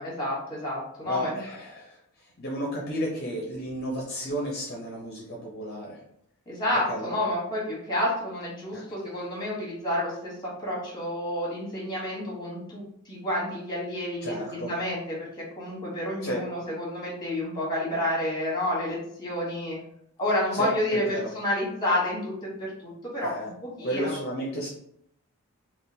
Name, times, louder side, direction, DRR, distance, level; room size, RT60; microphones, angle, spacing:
voice 1, 0.0-1.4 6.5-10.4 10.6-15.3 15.6-19.8 20.2-24.2, left 1 dB, 20° left, -4 dB, 1.2 m, -30 dB
voice 2, 1.0-6.0 6.9-7.1 8.7-9.0 14.2-14.7 16.2-16.4 20.5-21.3 23.2-23.5 23.8-24.7, equal, 50° left, -2 dB, 0.6 m, -33 dB
3.6 x 2.4 x 2.7 m, 0.71 s
head